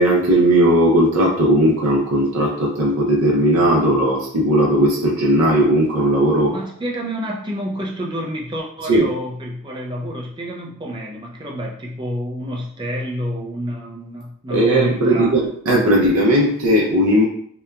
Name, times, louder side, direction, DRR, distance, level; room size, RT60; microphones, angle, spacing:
voice 1, 0.0-6.5 8.9-9.1 14.5-17.2, right 1 dB, 85° right, -3 dB, 0.5 m, -17 dB
voice 2, 6.5-15.3, equal, 20° right, -1 dB, 0.4 m, -28 dB
2.8 x 2.3 x 2.2 m, 0.63 s
head